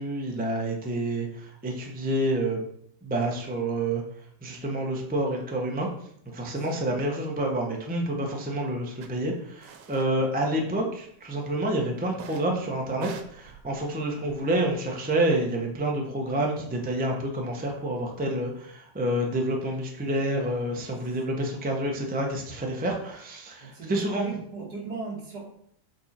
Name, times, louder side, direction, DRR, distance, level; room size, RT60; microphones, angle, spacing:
voice 1, 0.0-2.6 3.0-4.0 4.4-5.9 6.3-24.2, right 1 dB, 10° right, 0 dB, 0.5 m, -28 dB
voice 2, 6.6-7.0 10.1-10.3 14.1-14.3 21.3-21.4 23.6-25.4, right 4 dB, 45° right, -2 dB, 2.3 m, -38 dB
sound 1, 9.0-9.1 9.6-10.1 10.4-11.1 12.1-12.5 12.9-14.7, right 7 dB, 90° right, 1.7 m, -44 dB
7.7 x 4.6 x 4.4 m, 0.67 s
omnidirectional pair, 2.4 m